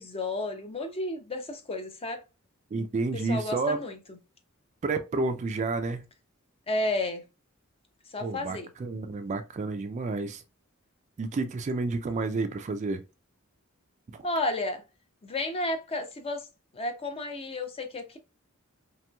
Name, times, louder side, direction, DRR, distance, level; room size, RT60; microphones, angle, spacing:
voice 1, 0.0-2.2 3.3-4.2 6.7-7.2 8.1-8.7 14.2-14.8 15.2-16.5 16.7-18.2, left 2 dB, 30° left, 0.5 m, -32 dB
voice 2, 2.7-3.8 4.8-6.0 8.2-10.4 11.2-13.0 14.1-14.3, right 3 dB, 35° right, 0.3 m, -30 dB
2.9 x 2.9 x 2.2 m
head